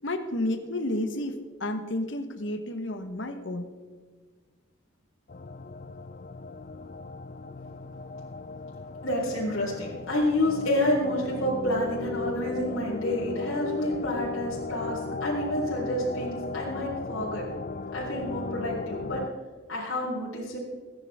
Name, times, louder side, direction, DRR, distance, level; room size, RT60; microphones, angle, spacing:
voice 1, 0.0-3.7, left 1 dB, 60° left, 8 dB, 1.2 m, -31 dB
sound 1, 5.3-19.3, left 4 dB, 40° left, 0.4 m, -37 dB
voice 2, 9.0-17.4 17.9-19.2 19.7-20.6, left 1 dB, 75° left, -6 dB, 4.0 m, -29 dB
21.5 x 10.0 x 3.6 m, 1.5 s
head